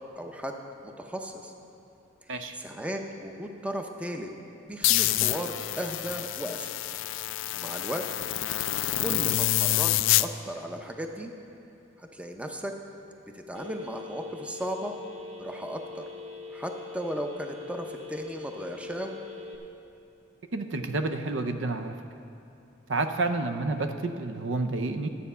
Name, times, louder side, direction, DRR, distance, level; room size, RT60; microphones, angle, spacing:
voice 1, 0.2-0.5 0.8-1.5 2.3-4.3 4.7-6.7 7.5-8.1 9.0-11.3 12.0-12.7 13.3-14.9 15.4-16.0 16.5-19.2, equal, 5° right, 4 dB, 0.6 m, -36 dB
sound 1, 4.8-10.3, left 15 dB, 75° left, 0.3 m, -27 dB
Telephone, 13.5-19.6, left 4 dB, 35° right, 1.0 m, -42 dB
voice 2, 20.5-22.0 22.9-25.1, right 3 dB, 70° right, 8 dB, 0.6 m, -29 dB
12.0 x 8.1 x 5.5 m, 2.7 s
head